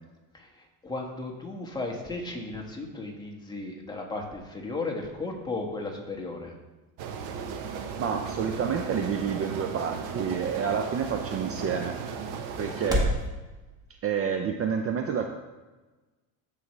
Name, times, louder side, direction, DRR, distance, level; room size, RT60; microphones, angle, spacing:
voice 1, 0.3-6.5 12.8-13.0, left 2 dB, 10° left, -1 dB, 1.5 m, -35 dB
sound 1, 7.0-13.3, left 1 dB, 10° right, 1.6 m, -36 dB
sound 2, 7.0-12.9, right 6 dB, 75° right, 1.0 m, -36 dB
voice 2, 8.0-12.0 12.6-13.1 14.0-15.3, right 7 dB, 35° right, 5 dB, 0.5 m, -29 dB
14.0 x 4.8 x 3.2 m, 1.2 s
cardioid pair, 120°, 40 cm